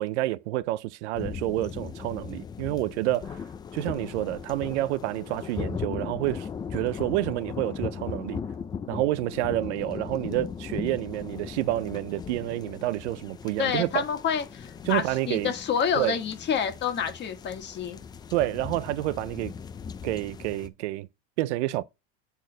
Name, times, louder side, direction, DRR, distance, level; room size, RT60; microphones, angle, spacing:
voice 1, 0.0-3.4 3.7-8.4 8.9-14.0 14.9-15.5 16.0-16.2 18.3-19.5 20.0-21.1 21.4-21.8, right 16 dB, 80° right, 0.5 m, -29 dB
sound 1, 1.1-20.7, left 6 dB, 15° left, 0.3 m, -38 dB
voice 2, 13.6-18.0, left 7 dB, 30° left, 1.5 m, -28 dB
8.1 x 4.4 x 3.8 m
supercardioid pair, 140°, 34 cm